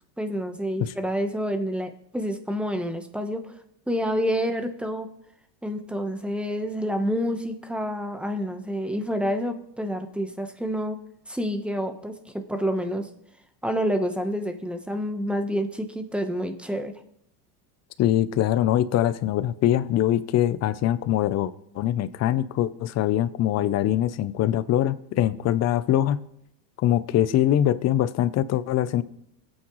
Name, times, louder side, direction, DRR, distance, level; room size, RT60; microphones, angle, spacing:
voice 1, 0.2-3.5 3.9-5.1 5.6-11.0 11.3-13.1 13.6-16.9, equal, ahead, 7 dB, 1.0 m, -28 dB
voice 2, 18.0-26.2 26.8-29.0, left 12 dB, 35° left, 14 dB, 0.6 m, -23 dB
24.0 x 8.9 x 3.1 m, 0.76 s
supercardioid pair, 125°, 50 cm